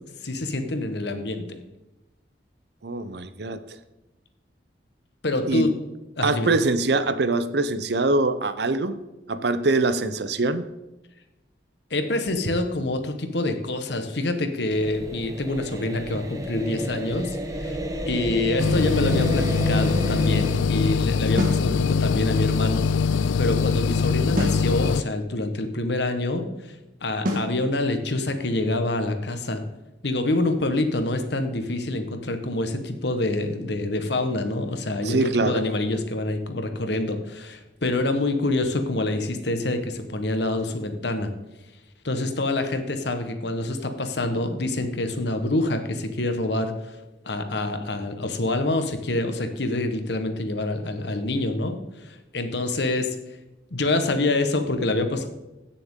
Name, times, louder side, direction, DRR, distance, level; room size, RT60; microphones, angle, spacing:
voice 1, 0.2-1.6 5.2-5.7 6.2-6.5 11.9-17.8 18.1-22.9 23.4-26.8 27.0-29.6 30.0-41.3 42.0-47.0 47.2-53.2 53.7-55.3, left 2 dB, 65° left, 7 dB, 1.3 m, -26 dB
voice 2, 2.8-3.8 5.5-5.7 6.2-9.0 9.3-10.7 35.0-35.6, right 3 dB, 60° right, 12 dB, 0.7 m, -23 dB
sound 1, 14.7-20.6, right 1 dB, 20° right, 1.0 m, -30 dB
sound 2, 18.6-25.0, left 5 dB, 90° left, 0.3 m, -23 dB
sound 3, 21.4-21.7 24.4-24.7 27.3-27.6, left 1 dB, 45° right, 2.0 m, -25 dB
16.5 x 6.9 x 3.7 m, 1.0 s
head